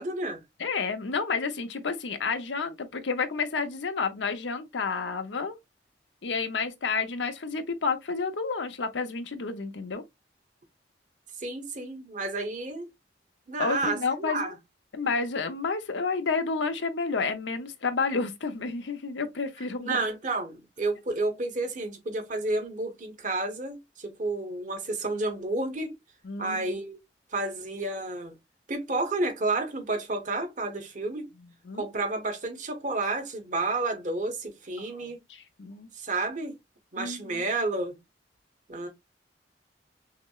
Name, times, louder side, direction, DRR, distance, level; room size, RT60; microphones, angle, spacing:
voice 1, 0.0-0.4 11.4-12.9 13.5-14.5 19.8-25.9 26.4-27.0 27.3-28.4 28.7-31.3 31.8-35.2 36.0-36.5 36.9-38.0 38.7-38.9, right 2 dB, 45° right, 1.1 m, -31 dB
voice 2, 0.6-5.6 6.2-10.0 13.6-14.5 14.9-20.0 26.2-26.7 31.7-31.9 34.8-35.9 37.0-37.4, left 4 dB, 85° left, 0.7 m, -30 dB
5.8 x 2.1 x 2.3 m
head